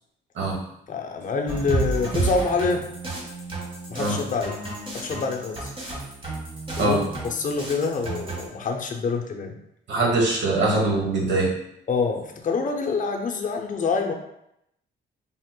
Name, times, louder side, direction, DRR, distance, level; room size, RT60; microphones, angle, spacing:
voice 1, 0.9-2.9 3.9-4.6 4.9-5.7 6.8-9.6 11.9-14.1, left 4 dB, 40° left, 3 dB, 0.5 m, -26 dB
sound 1, 1.5-8.5, right 3 dB, 25° right, 1.1 m, -31 dB
voice 2, 9.9-11.5, right 2 dB, 65° right, -2 dB, 1.1 m, -22 dB
3.6 x 2.8 x 2.2 m, 0.78 s
cardioid pair, 90°, 20 cm